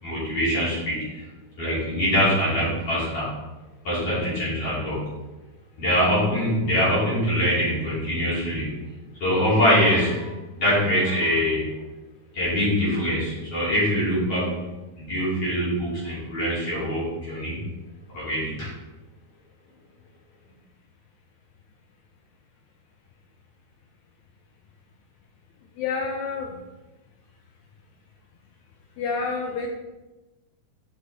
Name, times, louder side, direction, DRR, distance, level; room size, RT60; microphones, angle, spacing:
voice 1, 0.0-1.3 1.6-3.3 3.8-5.0 5.8-8.7 9.2-11.6 12.3-14.6 15.0-17.7 18.1-18.7, equal, 50° left, -9 dB, 3.8 m, -23 dB
voice 2, 25.8-26.6 29.0-29.7, left 4 dB, 75° left, 1 dB, 1.8 m, -28 dB
7.9 x 5.0 x 4.1 m, 1.1 s
omnidirectional pair, 3.7 m